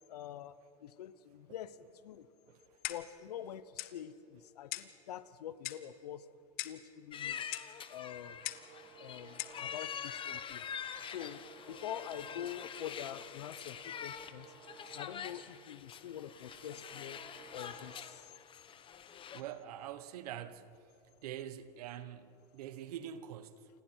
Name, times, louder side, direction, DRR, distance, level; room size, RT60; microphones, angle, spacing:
voice 1, 0.1-1.8 2.0-2.3 2.9-6.3 6.6-7.4 7.9-8.4 9.0-10.6 11.1-14.5 14.9-17.2 17.5-18.3, left 10 dB, 90° left, 1.0 m, -45 dB
voice 2, 2.5-2.8 19.3-20.8 21.2-23.7, right 10 dB, 75° right, 1.3 m, -45 dB
Clock, 2.8-3.2 3.8-4.0 4.7-5.0 5.6-5.9 6.6-6.9 7.5-7.7 8.4-8.7 9.4-9.6, left 17 dB, 50° left, 1.1 m, -41 dB
sound 1, 7.1-19.4, left 8 dB, 25° left, 1.1 m, -45 dB
sound 2, 7.8-10.2 10.6-12.9 13.3-15.6 16.0-18.4, right 6 dB, 45° right, 2.5 m, -58 dB
29.0 x 26.0 x 4.6 m
supercardioid pair, 120°, 20 cm